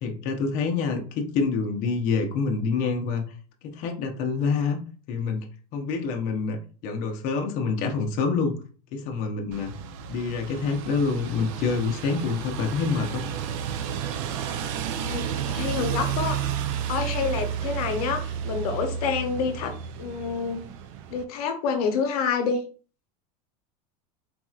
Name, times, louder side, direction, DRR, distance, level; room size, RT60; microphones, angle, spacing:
voice 1, 0.0-3.2 3.6-4.8 5.1-5.5 5.7-8.6 8.9-9.7 10.1-13.2, left 5 dB, 45° left, 3 dB, 0.7 m, -27 dB
sound 1, 9.5-21.2, right 8 dB, 60° right, 0.5 m, -32 dB
voice 2, 15.5-16.4 16.9-19.7 20.0-20.7 21.1-22.6, left 5 dB, 80° left, 6 dB, 0.7 m, -27 dB
4.0 x 2.9 x 2.4 m, 0.38 s
supercardioid pair, 155°, 19 cm